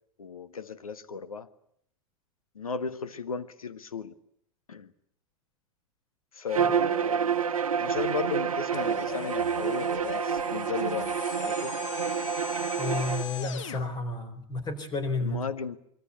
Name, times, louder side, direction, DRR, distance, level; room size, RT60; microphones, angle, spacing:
voice 1, 0.2-1.5 2.5-4.1 4.7-4.9 6.3-7.4 7.8-11.7 15.2-15.8, left 5 dB, 75° left, 11 dB, 1.6 m, -35 dB
Bowed string instrument, 6.5-13.2, right 7 dB, 70° right, 1.0 m, -28 dB
sound 1, 8.7-13.8, left 8 dB, 60° left, 1.5 m, -39 dB
voice 2, 12.8-15.4, left 2 dB, 25° left, 12 dB, 3.9 m, -31 dB
25.5 x 23.5 x 8.3 m, 0.71 s
figure-of-eight pair, 95°, 18 cm